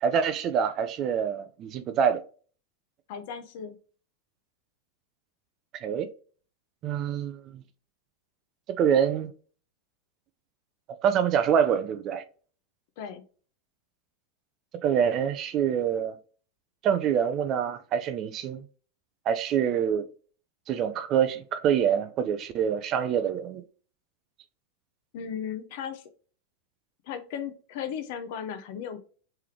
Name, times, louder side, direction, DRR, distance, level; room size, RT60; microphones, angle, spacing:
voice 1, 0.0-2.2 5.7-6.1 6.8-7.6 8.8-9.3 11.0-12.2 14.7-16.1 16.8-18.6 19.3-20.1 20.7-23.6, right 8 dB, 35° right, 0.4 m, -26 dB
voice 2, 3.1-3.8 13.0-13.2 25.1-26.0 27.0-29.0, left 8 dB, 50° left, 0.6 m, -36 dB
3.4 x 3.3 x 3.2 m
figure-of-eight pair, 90°, 0 cm